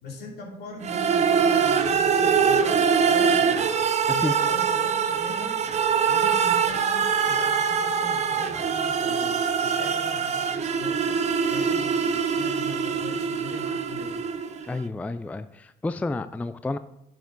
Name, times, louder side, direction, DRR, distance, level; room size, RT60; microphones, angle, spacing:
voice 1, 0.0-3.7 4.1-5.6 6.1-14.2, left 2 dB, 70° left, -1 dB, 3.0 m, -41 dB
sound 1, 0.8-14.7, right 6 dB, 40° right, 0.8 m, -23 dB
voice 2, 14.6-16.8, left 2 dB, 10° left, 12 dB, 0.4 m, -30 dB
10.5 x 7.4 x 4.0 m, 0.79 s
cardioid pair, 110°, 17 cm